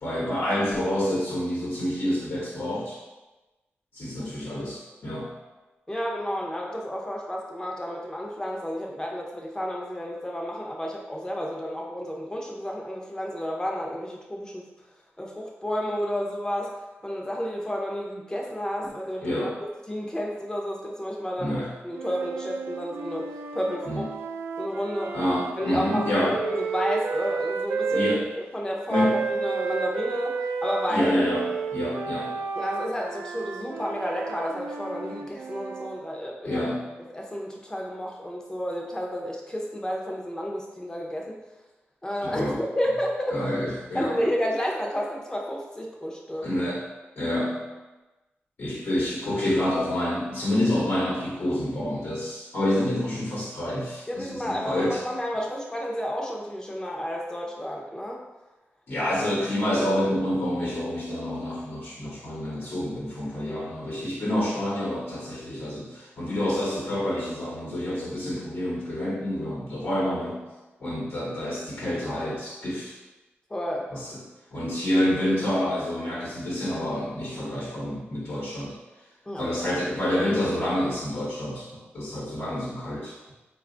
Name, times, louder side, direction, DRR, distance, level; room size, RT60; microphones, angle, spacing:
voice 1, 0.0-3.0 3.9-5.3 19.2-19.6 21.4-21.7 23.9-24.1 25.1-26.4 27.9-28.2 28.9-29.2 30.9-32.3 36.4-36.9 42.2-42.6 43.3-44.2 46.4-46.8 47.2-47.7 48.6-55.0 58.9-70.4 70.8-72.9 73.9-74.2 74.5-78.7 79.4-81.7 81.9-83.2, left 1 dB, 60° left, -6 dB, 1.0 m, -28 dB
voice 2, 5.9-14.6 15.2-16.7 17.0-19.5 19.9-24.1 24.6-25.2 25.6-26.1 26.4-28.1 28.5-31.1 32.6-36.6 37.1-41.4 42.0-43.4 43.9-46.7 54.1-58.2 73.5-73.9 79.3-79.6, equal, 15° left, -1 dB, 0.7 m, -31 dB
sound 1, 21.9-28.2 28.9-36.0, right 5 dB, 70° right, 0.3 m, -32 dB
4.1 x 2.3 x 3.7 m, 1.1 s
wide cardioid pair, 100°, 4 cm